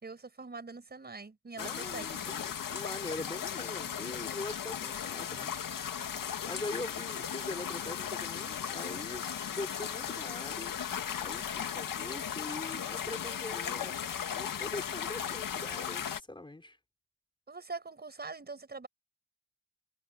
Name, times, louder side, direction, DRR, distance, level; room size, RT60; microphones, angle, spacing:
voice 1, 0.0-2.2 3.9-4.4 17.5-18.9, right 4 dB, 30° right, 5.4 m, -44 dB
sound 1, 1.6-16.2, left 8 dB, 90° left, 1.9 m, -37 dB
voice 2, 1.6-5.6 6.1-10.7 11.2-14.0 14.3-16.8, left 2 dB, 15° left, 4.6 m, -43 dB
wide cardioid pair, 155°, 32 cm